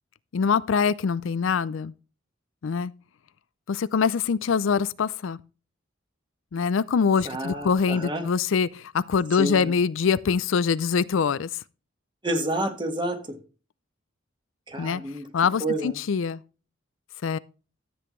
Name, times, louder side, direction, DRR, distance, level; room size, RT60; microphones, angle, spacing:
voice 1, 0.3-1.9 2.6-2.9 3.7-5.4 6.5-11.6 14.8-15.0 15.3-16.4 17.2-17.4, left 6 dB, 75° left, 0.4 m, -24 dB
voice 2, 7.2-8.2 9.4-9.7 12.2-13.4 14.7-15.3 15.6-16.0, right 1 dB, 25° right, 1.6 m, -29 dB
13.0 x 8.0 x 3.1 m
head